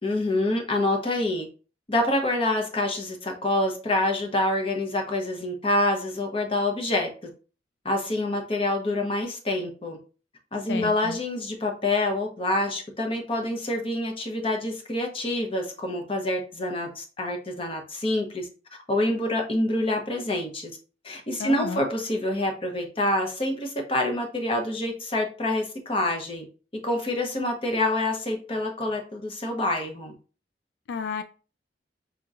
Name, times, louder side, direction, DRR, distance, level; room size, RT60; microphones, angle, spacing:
voice 1, 0.0-1.5 1.9-7.1 7.8-10.0 10.5-18.5 18.9-20.7 21.0-26.5 26.8-30.1, left 1 dB, 30° left, 3 dB, 0.8 m, -26 dB
voice 2, 10.7-11.2 21.4-21.9 30.9-31.2, left 5 dB, 85° left, 10 dB, 0.3 m, -31 dB
5.1 x 3.0 x 2.4 m, 0.36 s
head